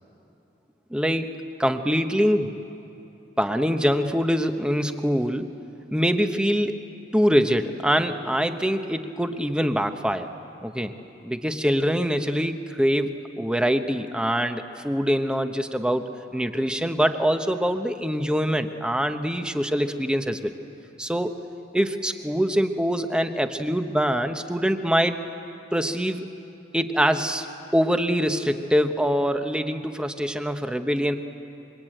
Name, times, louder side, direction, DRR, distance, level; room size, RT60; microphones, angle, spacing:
voice 1, 0.9-2.6 3.4-5.5 5.9-6.8 7.1-10.3 10.6-10.9 11.2-20.5 21.0-21.3 21.7-25.2 25.7-26.3 26.7-27.5 27.7-31.2, equal, 5° right, 7 dB, 1.0 m, -24 dB
26.0 x 23.0 x 9.0 m, 2.9 s
head